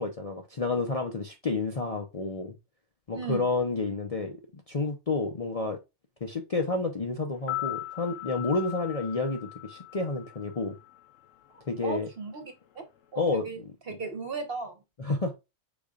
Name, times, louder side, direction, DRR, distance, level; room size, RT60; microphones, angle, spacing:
voice 1, 0.0-2.5 3.1-5.8 6.2-10.8 11.7-12.1 13.2-14.0 15.0-15.3, left 3 dB, 40° left, 0.6 m, -30 dB
voice 2, 3.1-3.5 11.5-12.8 13.1-13.6 13.9-14.8, right 4 dB, 50° right, 1.3 m, -36 dB
sound 1, 7.3-11.5 11.8-11.9, left 17 dB, 80° left, 1.0 m, -39 dB
5.2 x 3.9 x 2.4 m
omnidirectional pair, 1.3 m